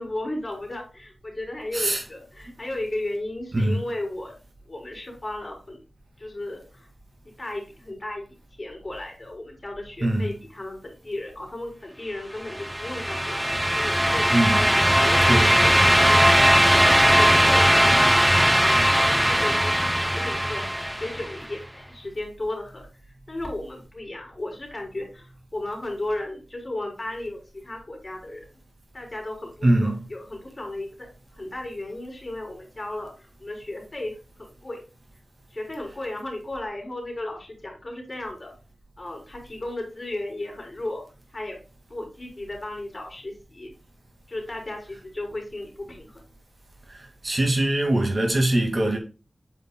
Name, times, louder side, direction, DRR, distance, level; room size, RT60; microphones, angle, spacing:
voice 1, 0.0-4.3 4.7-5.8 6.2-6.9 7.4-15.3 15.6-18.2 18.5-18.8 19.2-28.5 28.9-34.8 35.5-38.5 39.0-41.0 41.3-41.6 41.9-43.7 44.3-46.2, left 1 dB, 35° left, 3.7 m, -35 dB
sound 1, 12.5-21.4, equal, 5° right, 0.3 m, -19 dB
voice 2, 29.6-30.0 46.9-49.0, right 1 dB, 45° right, 2.0 m, -22 dB
8.0 x 5.4 x 2.2 m
wide cardioid pair, 90°, 0 cm